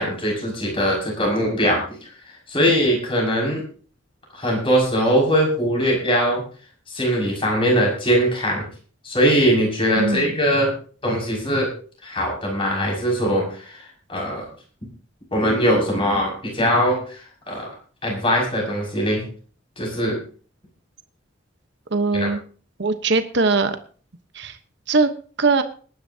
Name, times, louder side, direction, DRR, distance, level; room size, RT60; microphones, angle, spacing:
voice 1, 0.0-2.0 2.5-3.7 4.3-6.4 6.9-8.6 9.0-10.7 11.0-11.7 12.0-13.8 14.1-14.4 15.3-17.7 18.0-19.2 19.8-20.2 22.1-22.3, equal, 30° left, -1 dB, 6.2 m, -21 dB
voice 2, 10.0-10.3 21.9-22.4 22.8-23.8 24.3-24.6 24.9-25.1 25.4-25.6, right 3 dB, 60° right, 9 dB, 1.1 m, -20 dB
21.0 x 11.0 x 2.9 m, 0.40 s
head